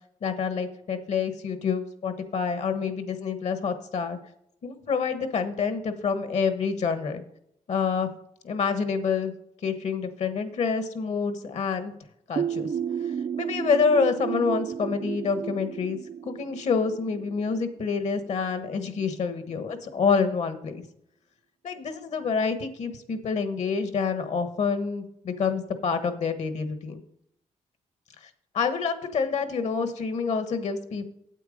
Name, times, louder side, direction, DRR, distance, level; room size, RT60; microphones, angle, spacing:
voice 1, 0.2-4.2 4.6-7.2 7.7-8.1 8.4-9.3 9.6-11.9 12.3-12.7 13.4-16.0 16.2-20.8 21.6-27.0 28.5-31.1, left 5 dB, 60° left, 9 dB, 1.3 m, -27 dB
sound 1, 12.4-17.9, right 8 dB, 50° right, 0.4 m, -32 dB
9.1 x 8.4 x 5.1 m, 0.74 s
wide cardioid pair, 145°, 13 cm